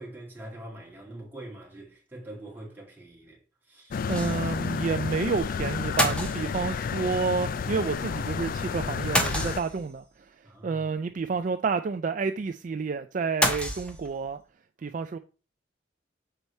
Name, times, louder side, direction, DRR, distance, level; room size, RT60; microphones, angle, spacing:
voice 1, 0.0-3.4 3.7-4.0 10.4-10.8, right 1 dB, 10° right, 2.3 m, -43 dB
sound 1, 3.9-9.6, left 6 dB, 50° left, 0.3 m, -31 dB
gun shots, 4.1-4.6 4.9-5.0 6.0-6.9 9.2-10.0 13.4-14.3, equal, 5° left, 1.1 m, -28 dB
voice 2, 4.1-14.4 14.8-15.2, right 5 dB, 45° right, 0.3 m, -30 dB
6.8 x 4.6 x 4.1 m
head